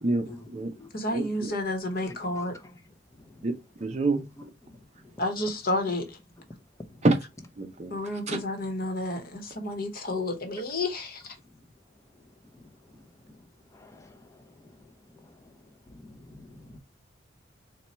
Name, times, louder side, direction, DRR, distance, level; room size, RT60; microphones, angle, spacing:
voice 1, 0.0-0.7 1.1-1.5 3.4-3.6 3.8-4.3 7.0-7.2 7.6-7.9 8.3-8.4, right 2 dB, 35° right, 0.5 m, -27 dB
voice 2, 0.9-2.6 5.2-6.2 7.9-11.3, left 2 dB, 50° left, 1.0 m, -31 dB
voice 3, 16.0-16.8, left 1 dB, 15° left, 0.5 m, -48 dB
4.1 x 2.2 x 4.1 m
head